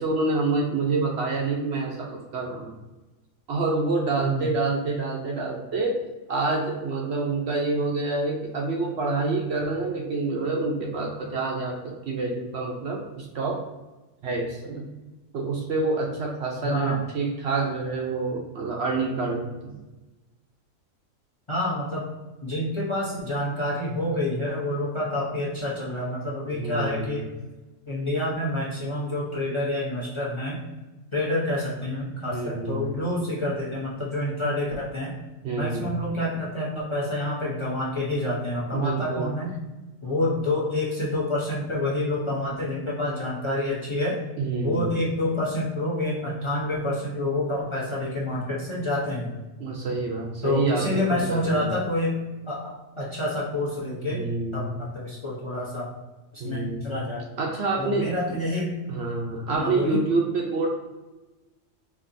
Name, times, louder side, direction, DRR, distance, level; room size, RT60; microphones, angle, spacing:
voice 1, 0.0-2.7 3.5-6.0 6.3-13.6 14.2-14.9 15.3-19.7 26.5-27.2 32.2-32.9 35.4-35.9 38.7-39.3 44.4-45.0 49.6-51.7 54.1-54.8 56.4-57.0 57.4-58.1 58.9-60.7, right 3 dB, 65° right, 0 dB, 0.7 m, -27 dB
voice 2, 16.6-17.0 21.5-22.1 22.4-27.2 27.9-30.6 31.1-35.1 35.6-39.5 40.0-44.2 44.6-49.4 50.4-52.2 52.5-54.2 54.5-55.9 56.3-57.2 57.8-58.7 59.6-60.0, left 1 dB, 25° left, -5 dB, 0.7 m, -28 dB
4.5 x 2.7 x 2.6 m, 1.1 s
omnidirectional pair, 1.4 m